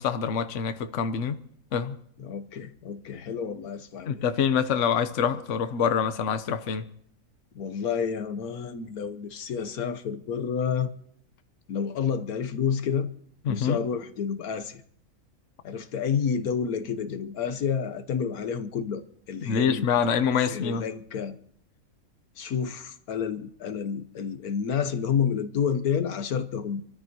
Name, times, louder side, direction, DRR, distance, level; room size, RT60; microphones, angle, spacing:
voice 1, 0.0-1.4 1.7-1.9 4.1-6.9 13.5-13.8 19.4-20.8, left 7 dB, 55° left, 1.2 m, -25 dB
voice 2, 2.2-4.2 7.5-10.9 11.7-13.1 13.5-14.8 15.6-19.9 20.5-21.4 22.4-26.8, left 7 dB, 75° left, 1.4 m, -29 dB
27.0 x 14.0 x 2.9 m
omnidirectional pair, 1.6 m